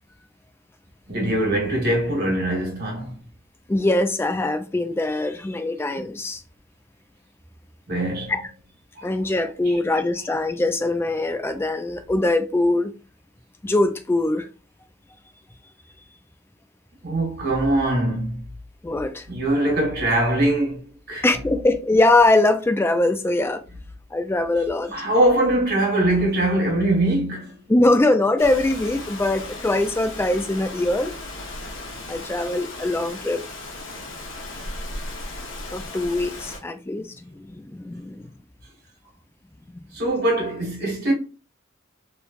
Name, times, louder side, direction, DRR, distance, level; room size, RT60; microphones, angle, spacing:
voice 1, 1.1-3.2 7.9-8.3 8.9-9.1 9.6-9.8 17.0-18.4 19.3-21.3 24.9-27.6 39.9-41.1, right 1 dB, 55° right, 1.4 m, -22 dB
voice 2, 3.7-6.4 8.3-8.4 9.0-12.9 13.6-14.5 18.8-19.3 21.2-23.6 24.1-24.9 27.7-31.1 32.1-33.4 35.7-38.3, left 2 dB, 10° left, 0.3 m, -22 dB
Rain, 28.4-36.6, left 2 dB, 80° left, 0.8 m, -36 dB
3.1 x 2.2 x 2.4 m
head